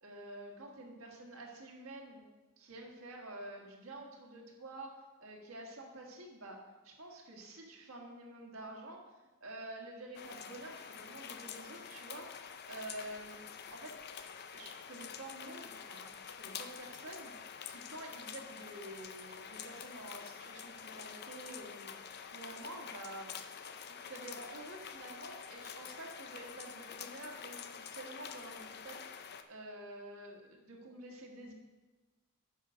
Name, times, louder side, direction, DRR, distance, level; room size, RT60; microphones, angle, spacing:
voice 1, 0.0-2.2 2.6-4.9 5.2-9.0 9.4-12.3 12.7-13.9 14.5-23.3 23.8-31.5, right 1 dB, 70° right, -1 dB, 1.7 m, -49 dB
sound 1, 10.1-29.4, left 7 dB, 50° left, 0.5 m, -47 dB
9.2 x 5.8 x 5.1 m, 1.2 s
head